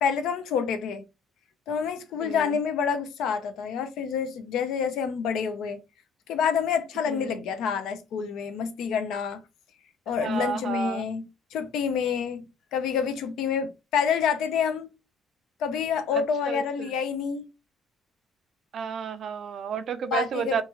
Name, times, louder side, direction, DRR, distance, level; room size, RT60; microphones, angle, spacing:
voice 1, 0.0-1.0 1.7-5.8 6.3-9.4 10.1-14.9 15.6-17.4 20.1-20.6, left 7 dB, 85° left, 0.5 m, -28 dB
voice 2, 2.2-2.5 7.1-7.4 10.2-11.0 16.5-16.9 18.7-20.6, right 7 dB, 65° right, 0.4 m, -31 dB
2.9 x 2.3 x 2.8 m
cardioid pair, 90°, 0 cm